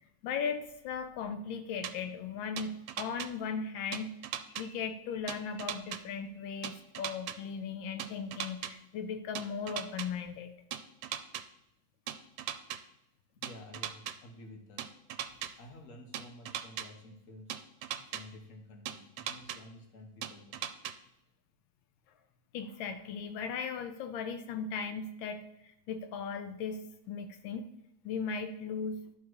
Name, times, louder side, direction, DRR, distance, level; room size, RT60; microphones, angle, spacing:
voice 1, 0.2-4.2 4.5-10.5 22.5-27.6 28.0-29.0, left 6 dB, 85° left, 7 dB, 1.4 m, -37 dB
sound 1, 1.8-1.9 2.6-3.3 3.9-4.6 5.3-6.0 6.6-7.4 8.0-8.7 9.3-10.1 10.7-11.4 12.1-12.8 13.4-14.1 14.8-15.5 16.1-16.9 17.5-18.2 18.9-19.6 20.2-20.9, right 10 dB, 80° right, 1.3 m, -38 dB
voice 2, 13.3-14.8 15.6-17.6 18.1-20.7, left 1 dB, 45° left, 2 dB, 1.6 m, -51 dB
12.0 x 4.0 x 4.7 m, 0.83 s
omnidirectional pair, 2.1 m